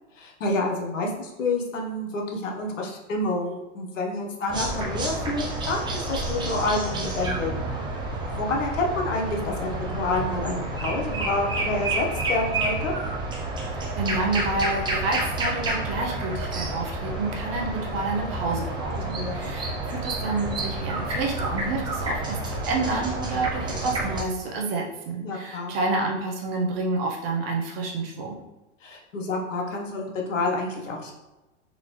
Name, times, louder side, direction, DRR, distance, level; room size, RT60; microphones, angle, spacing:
voice 1, 0.2-7.5 8.2-12.9 19.0-19.5 25.2-25.8 28.8-31.1, left 2 dB, 80° left, 0 dB, 1.1 m, -28 dB
sound 1, 4.5-24.2, right 2 dB, 10° right, 0.6 m, -30 dB
voice 2, 13.7-28.4, right 3 dB, 50° right, -1 dB, 0.9 m, -29 dB
3.9 x 2.8 x 3.1 m, 1.1 s
hypercardioid pair, 125°, 37 cm